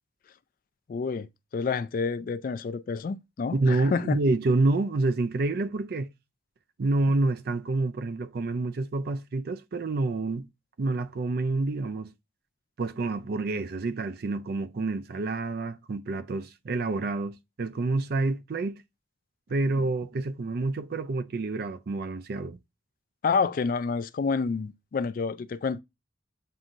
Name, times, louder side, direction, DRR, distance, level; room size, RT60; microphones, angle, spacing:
voice 1, 0.9-4.2 23.2-25.8, left 5 dB, 45° left, 0.3 m, -29 dB
voice 2, 3.5-6.1 6.8-10.5 10.8-12.1 12.8-18.8 19.5-22.6, right 3 dB, 55° right, 0.4 m, -28 dB
7.4 x 2.7 x 2.5 m
head